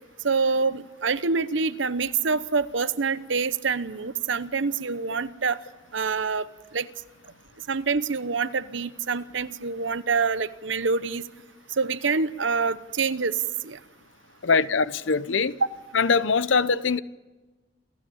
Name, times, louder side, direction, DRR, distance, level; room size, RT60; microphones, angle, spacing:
voice 1, 0.2-5.6 5.9-6.9 7.7-11.2 11.8-13.8, right 5 dB, 85° right, 0.9 m, -26 dB
voice 2, 14.4-15.6 15.9-17.0, left 5 dB, 85° left, 0.8 m, -22 dB
27.5 x 15.5 x 8.6 m
head